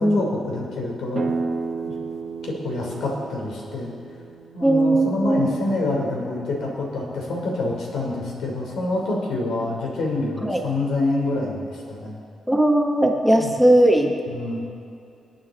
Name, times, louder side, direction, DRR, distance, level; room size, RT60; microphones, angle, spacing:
voice 1, 0.0-1.3 1.8-1.9 2.4-3.9 4.5-12.2 13.3-13.6 14.3-14.6, left 2 dB, 85° left, -2 dB, 3.5 m, -27 dB
sound 1, 1.1-6.7, right 4 dB, 45° right, 0.8 m, -33 dB
voice 2, 4.6-5.5 10.4-10.6 12.5-14.1, right 1 dB, ahead, 2 dB, 1.1 m, -18 dB
26.0 x 9.0 x 4.0 m, 2.5 s
cardioid pair, 135°, 0 cm